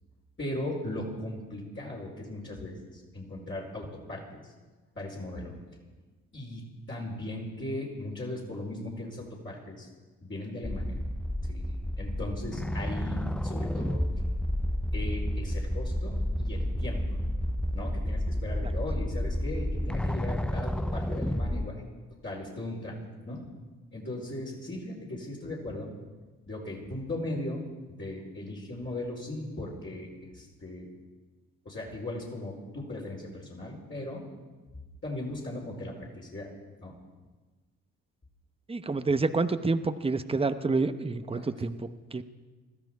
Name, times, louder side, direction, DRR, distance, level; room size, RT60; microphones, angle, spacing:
voice 1, 0.4-4.4 4.9-5.6 6.3-6.6 6.9-9.9 10.2-11.0 11.4-11.6 12.0-14.0 14.9-17.0 17.7-21.8 22.2-23.0 23.2-23.5 23.9-25.9 26.5-27.7 28.0-30.9 31.6-34.2 35.0-36.5 36.8-36.9 41.3-41.5, left 1 dB, 35° left, -5 dB, 4.5 m, -38 dB
sound 1, 10.6-21.7, left 1 dB, 5° left, 0.5 m, -31 dB
voice 2, 38.7-42.2, right 3 dB, 15° right, 10 dB, 0.9 m, -28 dB
20.5 x 13.5 x 4.7 m, 1.3 s
supercardioid pair, 55°, 34 cm